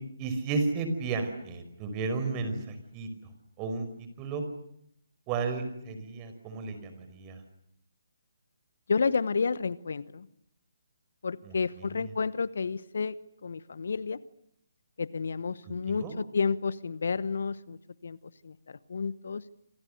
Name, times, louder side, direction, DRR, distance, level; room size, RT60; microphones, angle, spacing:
voice 1, 0.2-3.1 3.6-3.9 4.2-4.4 5.3-7.4 11.4-12.1 15.6-16.1, right 4 dB, 25° right, 8 dB, 5.1 m, -33 dB
voice 2, 8.9-10.3 11.2-13.2 13.4-14.2 15.0-18.2 18.4-19.4, left 5 dB, 60° left, 17 dB, 1.0 m, -31 dB
27.5 x 27.0 x 6.7 m, 0.74 s
figure-of-eight pair, 145°, 0 cm